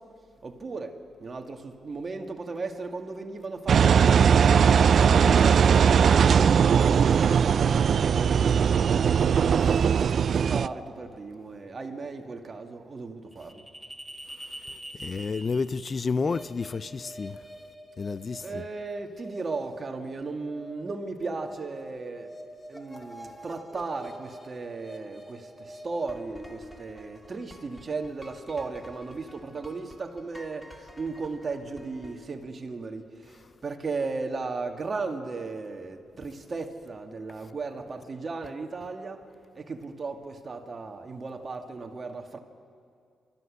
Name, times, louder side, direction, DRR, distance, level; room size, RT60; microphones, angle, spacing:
voice 1, 0.4-0.9 1.2-4.6 5.0-9.8 10.5-13.5 18.4-22.3 22.7-25.4 25.8-30.6 31.0-33.0 33.6-39.2 39.7-42.4, right 3 dB, 45° right, 2.1 m, -36 dB
Engine, 3.7-10.7, right 7 dB, 65° right, 0.4 m, -20 dB
sound 1, 13.3-32.3, equal, 10° left, 2.8 m, -46 dB
voice 2, 14.3-17.4 18.0-18.6 33.3-33.5 37.3-37.5, left 4 dB, 45° left, 0.5 m, -32 dB
29.5 x 14.0 x 6.5 m
supercardioid pair, 60°, 0 cm